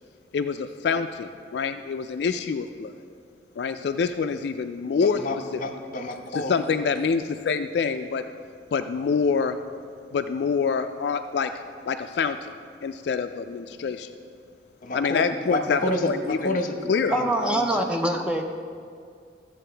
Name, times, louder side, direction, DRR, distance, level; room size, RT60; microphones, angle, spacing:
voice 1, 0.3-2.9 3.6-5.2 6.3-8.2 8.7-9.6 10.1-11.5 11.9-14.1 14.9-16.6 16.9-17.1, left 5 dB, 65° left, 8 dB, 0.3 m, -26 dB
voice 2, 5.0-6.6 14.8-17.9, left 1 dB, 50° left, 5 dB, 0.8 m, -30 dB
voice 3, 17.1-18.4, right 1 dB, 5° right, 3 dB, 0.5 m, -24 dB
13.5 x 7.6 x 3.3 m, 2.2 s
head